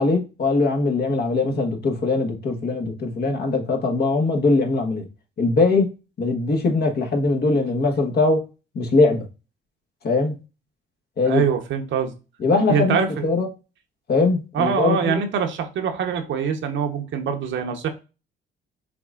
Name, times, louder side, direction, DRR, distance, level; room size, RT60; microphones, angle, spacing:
voice 1, 0.0-5.0 5.4-5.9 6.2-8.4 8.7-9.2 10.0-10.4 11.2-11.4 12.4-13.5 14.1-15.2, left 3 dB, 55° left, 1.3 m, -21 dB
voice 2, 11.3-12.1 12.7-13.3 14.5-17.9, right 7 dB, 70° right, 1.0 m, -24 dB
6.0 x 3.5 x 2.4 m
cardioid pair, 90°, 20 cm